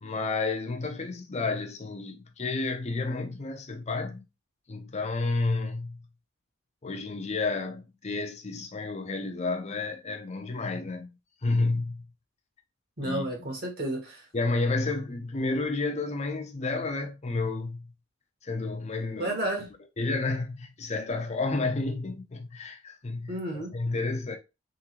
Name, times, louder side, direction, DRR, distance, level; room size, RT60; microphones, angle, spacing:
voice 1, 0.0-4.2 4.7-6.0 6.8-11.1 11.4-12.1 13.0-13.3 14.3-17.9 18.4-19.4 20.0-23.4 23.7-24.4, left 3 dB, 35° left, 0.6 m, -31 dB
voice 2, 13.0-14.3 19.2-19.7 23.3-23.7, right 1 dB, 50° right, 1.7 m, -31 dB
3.8 x 3.8 x 3.0 m
head